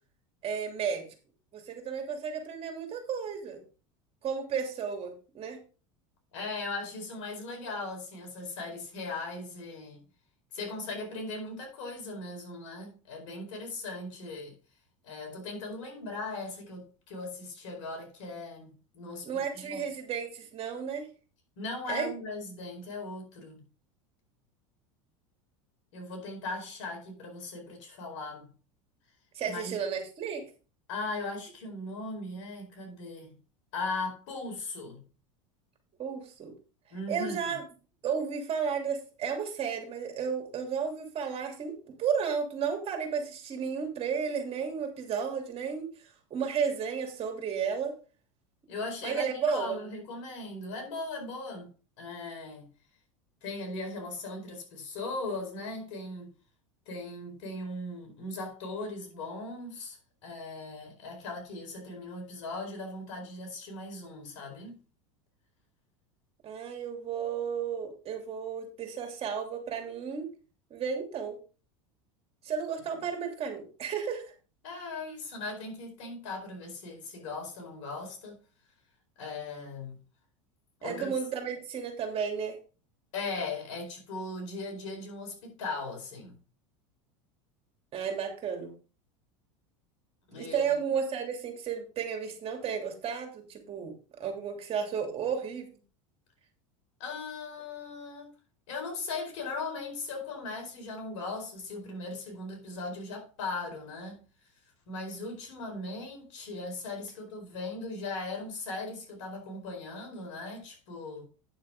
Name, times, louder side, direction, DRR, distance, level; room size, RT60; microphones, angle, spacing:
voice 1, 0.4-1.1 1.5-3.6 4.2-5.6 19.2-21.1 21.9-22.1 29.3-30.4 36.0-36.5 37.1-37.6 38.0-45.9 46.3-47.9 49.0-49.8 66.4-70.3 70.7-71.4 72.4-74.2 80.8-82.5 87.9-88.7 90.4-93.9 94.2-95.7, right 6 dB, 35° right, 3.0 m, -33 dB
voice 2, 6.3-10.0 10.5-14.6 15.0-19.8 21.6-23.6 25.9-28.5 29.5-29.8 30.9-33.4 33.7-35.0 36.9-37.6 48.7-51.7 52.0-52.7 53.4-56.3 56.9-60.0 60.2-64.8 74.6-78.4 79.2-80.0 80.8-81.1 83.1-86.4 90.3-90.7 97.0-98.3 98.7-104.2 104.9-111.2, left 3 dB, 70° left, 4.6 m, -38 dB
9.4 x 7.4 x 3.7 m
hypercardioid pair, 100°, 17 cm